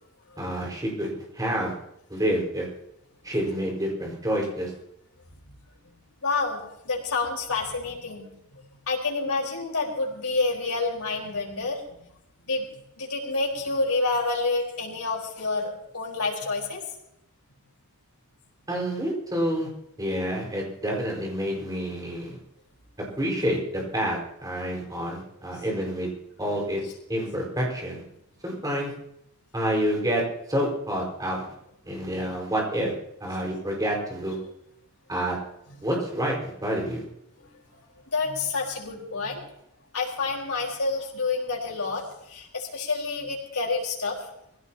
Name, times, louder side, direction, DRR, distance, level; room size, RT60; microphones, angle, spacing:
voice 1, 0.4-1.8 2.1-2.7 3.2-4.7 18.7-19.7 20.0-22.3 23.2-26.1 26.4-26.8 27.1-28.0 28.4-28.9 29.5-30.2 30.5-31.4 31.8-32.9 33.2-34.4 35.1-35.4 35.8-37.0, equal, 15° right, -1 dB, 5.0 m, -28 dB
voice 2, 6.2-6.6 6.8-8.3 8.9-11.8 12.5-12.7 13.0-16.8 38.1-39.4 39.9-42.0 42.3-44.2, left 3 dB, 80° left, -2 dB, 4.5 m, -28 dB
21.5 x 16.5 x 2.9 m, 0.80 s
head